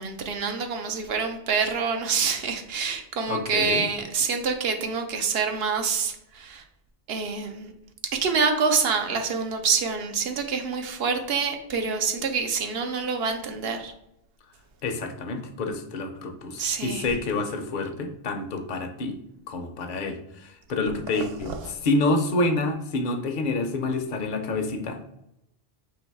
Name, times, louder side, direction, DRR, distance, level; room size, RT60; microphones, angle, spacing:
voice 1, 0.0-6.6 7.1-7.7 8.1-13.9 16.6-17.1 21.6-21.7, right 5 dB, 70° right, 5 dB, 0.8 m, -26 dB
voice 2, 3.3-3.9 14.8-19.2 19.5-25.1, left 2 dB, 55° left, 5 dB, 0.7 m, -28 dB
3.8 x 2.9 x 4.6 m, 0.82 s
omnidirectional pair, 1.1 m